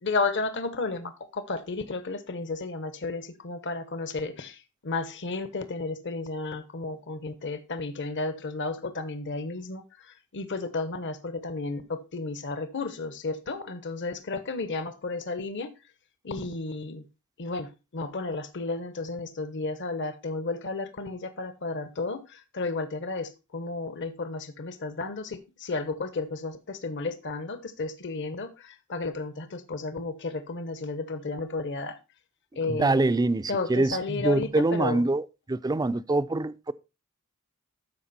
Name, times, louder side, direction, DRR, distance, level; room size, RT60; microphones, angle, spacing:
voice 1, 0.0-15.7 16.2-17.0 17.4-32.0 32.6-33.0 33.5-35.0, left 3 dB, 55° left, 1.0 m, -33 dB
voice 2, 32.7-35.2 35.5-36.7, right 2 dB, 15° right, 0.4 m, -25 dB
13.0 x 5.2 x 4.1 m
head